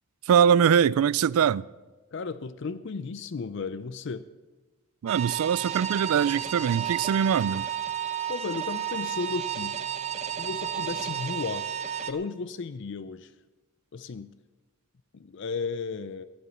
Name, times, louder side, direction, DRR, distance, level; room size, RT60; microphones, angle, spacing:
voice 1, 0.3-1.7 5.0-7.7, right 8 dB, 80° right, 0.3 m, -22 dB
voice 2, 2.1-4.3 8.3-9.8 10.3-11.7 12.1-13.3 13.9-14.3 15.1-16.2, left 4 dB, 55° left, 0.4 m, -34 dB
sound 1, 5.1-12.1, right 10 dB, 30° right, 0.8 m, -32 dB
14.5 x 8.5 x 7.2 m
head